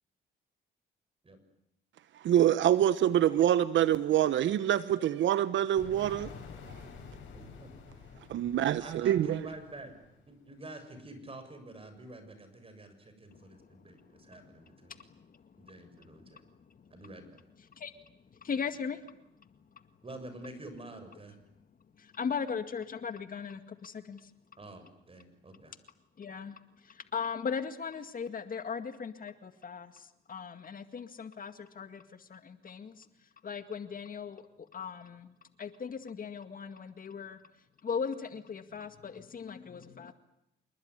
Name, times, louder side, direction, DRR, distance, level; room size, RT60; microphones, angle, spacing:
voice 1, 2.1-6.3 8.3-9.4, right 11 dB, 70° right, 15 dB, 1.0 m, -26 dB
sound 1, 5.8-10.4, left 5 dB, 70° left, 6.8 m, -49 dB
voice 2, 7.3-7.7 8.8-9.9 10.3-15.1 15.6-16.4 16.9-17.4 20.0-21.3 24.6-25.7, right 1 dB, 30° right, 9 dB, 7.0 m, -48 dB
voice 3, 13.3-13.7 14.9-15.7 16.2-16.3 16.7-16.8 17.8-17.9 18.4-19.0 22.0-24.3 26.2-33.1 33.4-37.4 37.8-40.1, left 6 dB, 45° left, 9 dB, 2.0 m, -38 dB
27.0 x 21.0 x 9.8 m, 0.79 s
cardioid pair, 90°, 20 cm